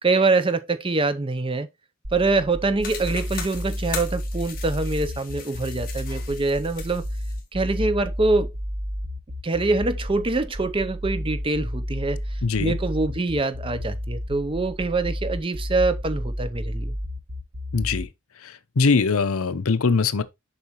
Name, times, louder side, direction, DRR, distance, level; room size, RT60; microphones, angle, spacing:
voice 1, 0.0-1.7 2.1-7.0 7.5-8.5 9.4-16.9, right 3 dB, 25° right, 0.6 m, -24 dB
sound 1, 2.0-18.0, equal, 85° right, 1.4 m, -31 dB
sound 2, 2.8-7.4, left 7 dB, 40° left, 1.9 m, -39 dB
voice 2, 12.4-12.8 17.7-18.1 18.4-20.2, left 4 dB, 75° left, 0.7 m, -22 dB
7.1 x 5.5 x 3.0 m
head